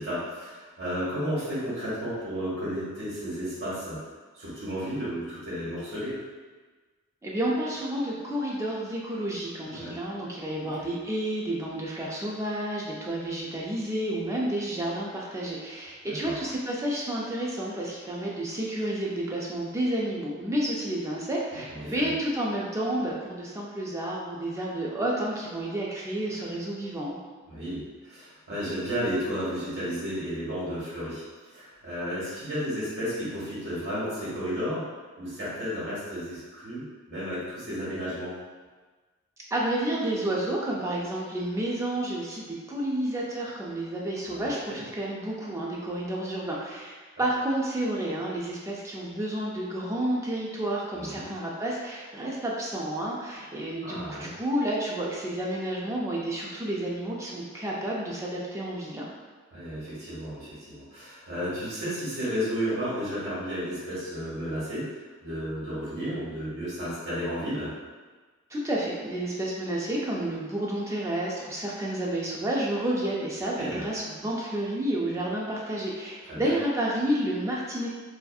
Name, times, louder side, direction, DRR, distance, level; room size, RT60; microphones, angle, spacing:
voice 1, 0.0-4.0 4.3-6.2 9.6-10.0 10.6-10.7 16.2-16.4 21.7-22.1 27.5-34.9 35.2-38.3 44.2-44.8 50.9-51.2 53.8-54.3 59.5-67.7 73.6-73.8 76.3-76.5, equal, 55° right, -10 dB, 1.3 m, -33 dB
voice 2, 7.2-27.2 39.5-59.1 68.5-77.9, right 1 dB, 15° right, -4 dB, 0.3 m, -30 dB
2.6 x 2.5 x 2.3 m, 1.4 s
head